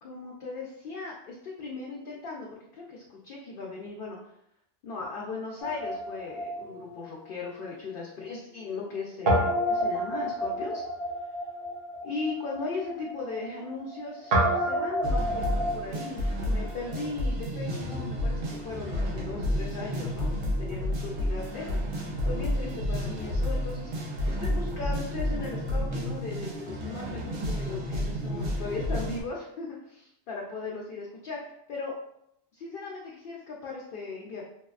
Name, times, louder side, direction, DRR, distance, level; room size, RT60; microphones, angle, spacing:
voice 1, 0.0-4.2 4.8-10.8 12.0-20.3 20.6-21.7 22.2-31.9 32.5-34.4, left 4 dB, 60° left, -3 dB, 0.7 m, -38 dB
Guitar, 5.6-8.0 8.3-8.4 9.3-17.1, equal, 60° right, 0.9 m, -30 dB
sound 1, 15.0-29.2, equal, 90° right, 1.0 m, -30 dB
3.1 x 2.8 x 2.3 m, 0.76 s
omnidirectional pair, 1.1 m